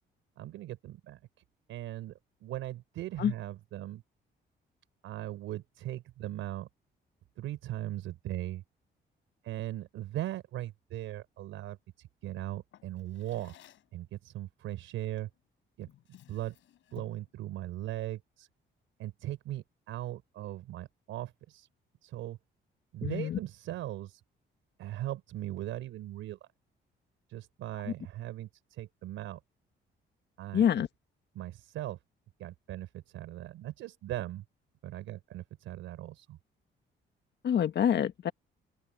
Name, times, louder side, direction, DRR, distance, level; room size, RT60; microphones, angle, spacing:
voice 1, 0.4-1.2 1.7-2.1 2.4-4.0 5.0-6.7 7.4-8.6 9.4-13.5 13.9-15.3 15.8-15.9 16.3-16.5 16.9-18.5 19.0-21.7 22.0-22.4 22.9-24.2 24.8-26.4 27.3-29.4 30.4-30.7 31.3-32.0 32.4-34.4 34.8-36.4, right 14 dB, 90° right, 4.9 m, -39 dB
Drawer open or close, 12.7-14.0 15.2-15.4 15.8-17.3, left 12 dB, 80° left, 5.3 m, -56 dB
voice 2, 23.0-23.4 30.5-30.9 37.4-38.3, left 9 dB, 60° left, 1.4 m, -26 dB
open air
cardioid pair, 90°, 20 cm